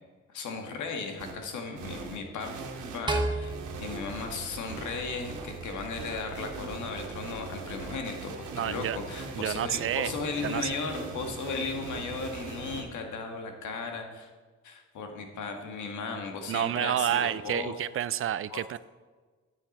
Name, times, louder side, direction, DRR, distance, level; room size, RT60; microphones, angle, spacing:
voice 1, 0.3-2.6 2.9-14.3 14.6-17.7 18.5-18.6, left 4 dB, 75° left, 4 dB, 1.8 m, -36 dB
sound 1, 1.2-1.3 1.8-12.8, right 4 dB, 80° right, 1.7 m, -40 dB
sound 2, 3.1-5.5, right 2 dB, 15° right, 1.2 m, -33 dB
voice 2, 8.5-9.0 9.4-10.1 10.4-10.7 16.5-18.8, right 10 dB, 45° right, 17 dB, 0.4 m, -29 dB
9.5 x 9.1 x 4.2 m, 1.4 s
cardioid pair, 90°, 30 cm